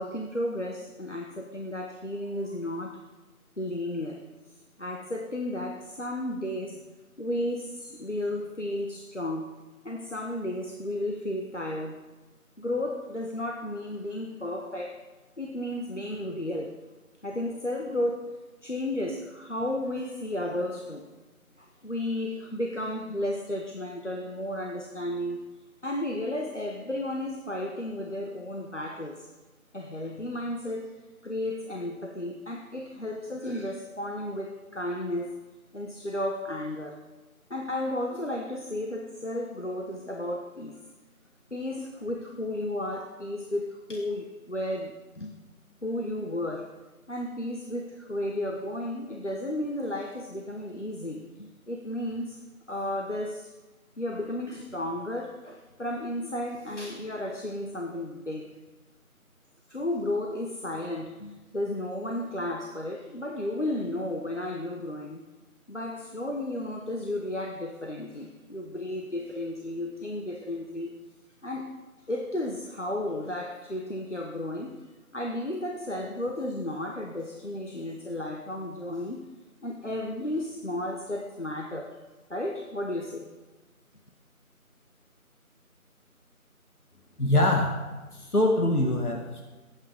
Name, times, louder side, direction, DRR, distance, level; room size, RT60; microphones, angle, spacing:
voice 1, 0.0-3.0 3.6-4.2 4.8-6.8 7.2-9.6 9.8-12.0 12.6-15.0 15.4-16.8 17.2-21.1 21.6-25.4 25.8-29.3 29.7-35.3 35.7-37.0 37.5-40.8 41.5-45.3 45.8-46.8 47.1-52.4 52.7-53.5 54.0-58.5 59.7-65.2 65.7-70.9 71.4-71.8 72.1-74.8 75.1-79.3 79.6-82.0 82.3-83.3, left 1 dB, 55° left, 1 dB, 1.3 m, -33 dB
voice 2, 87.2-87.8 88.1-89.4, left 1 dB, 85° left, 1 dB, 2.1 m, -24 dB
22.0 x 9.0 x 3.6 m, 1.2 s
figure-of-eight pair, 180°, 43 cm